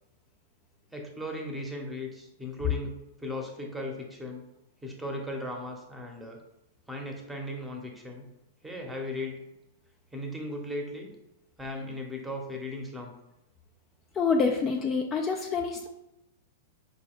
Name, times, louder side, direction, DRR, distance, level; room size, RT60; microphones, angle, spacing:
voice 1, 0.9-4.4 4.8-6.4 6.9-8.2 8.6-9.4 10.1-11.1 11.6-13.1, left 1 dB, 5° right, 1 dB, 0.8 m, -37 dB
voice 2, 14.2-15.9, left 5 dB, 25° left, 2 dB, 0.4 m, -27 dB
4.9 x 2.2 x 3.6 m, 0.90 s
hypercardioid pair, 105°, 0 cm